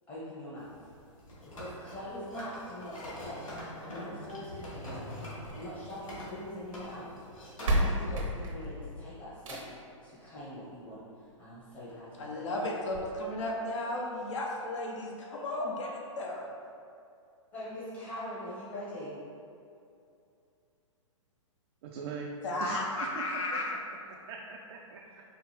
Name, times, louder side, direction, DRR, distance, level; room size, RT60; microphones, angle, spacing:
voice 1, 0.1-0.7 1.4-3.4 3.9-5.1 5.5-7.0 7.7-9.6 10.0-11.0 11.4-12.4 17.5-19.2, left 1 dB, 30° left, -8 dB, 1.1 m, -42 dB
sound 1, 0.6-7.9, left 1 dB, 85° left, 1.2 m, -44 dB
sound 2, 5.3-6.5 7.3-7.4 7.6-9.9 11.3-11.4 11.9-12.0 12.2-12.3 12.9-13.0, right 1 dB, 75° right, 0.9 m, -32 dB
voice 2, 12.2-16.5 22.4-23.7, left 1 dB, 65° left, -2 dB, 0.9 m, -34 dB
voice 3, 21.8-22.3 22.6-23.2 23.5-23.6 24.3-25.2, right 4 dB, 50° right, -1 dB, 0.4 m, -41 dB
4.8 x 2.5 x 3.3 m, 2.6 s
hypercardioid pair, 120°, 17 cm